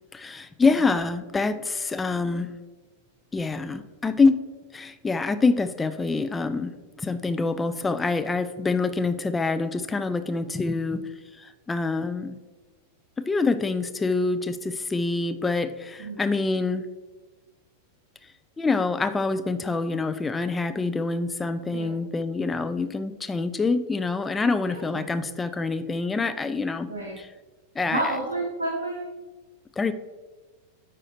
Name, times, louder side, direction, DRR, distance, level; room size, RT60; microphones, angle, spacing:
voice 1, 0.1-2.5 3.3-4.4 4.7-11.1 11.4-12.4 13.2-16.9 18.6-26.9 27.2-27.3 27.8-28.0 29.8-29.9, left 3 dB, 15° left, 10 dB, 0.4 m, -26 dB
voice 2, 24.7-25.0 26.9-27.2 27.9-29.0, right 2 dB, 70° right, -1 dB, 0.9 m, -30 dB
9.7 x 4.2 x 2.6 m, 1.2 s
figure-of-eight pair, 90°, 0 cm